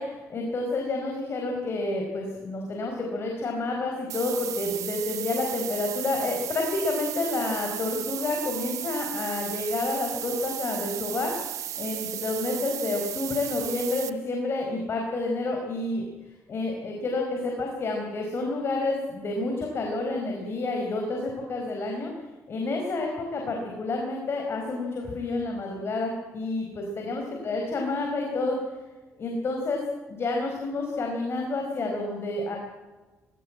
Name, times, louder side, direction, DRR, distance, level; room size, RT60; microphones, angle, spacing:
voice 1, 0.0-11.3 11.8-16.0 16.5-22.1 22.5-28.6 29.2-29.8 30.1-32.6, left 2 dB, 50° left, 1 dB, 4.8 m, -29 dB
sound 1, 4.1-14.1, right 11 dB, 80° right, 1.0 m, -35 dB
20.0 x 18.0 x 8.7 m, 1.2 s
cardioid pair, 110°, 5 cm